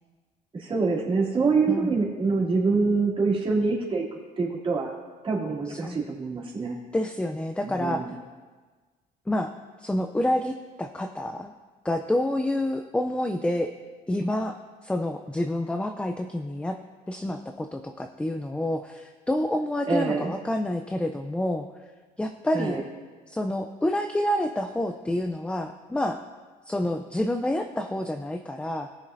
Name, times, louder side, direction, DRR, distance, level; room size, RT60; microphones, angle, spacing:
voice 1, 0.5-4.1 4.4-4.9 5.2-6.8 7.6-8.1 19.8-20.3 22.5-22.8, right 4 dB, 30° right, -5 dB, 2.9 m, -25 dB
voice 2, 6.9-8.1 9.3-9.5 9.8-11.5 11.8-13.7 14.1-14.6 14.8-16.8 17.1-21.7 22.2-22.8 23.3-26.2 26.7-28.9, left 1 dB, 5° left, 6 dB, 0.4 m, -28 dB
19.0 x 7.2 x 2.6 m, 1.4 s
cardioid pair, 110°, 17 cm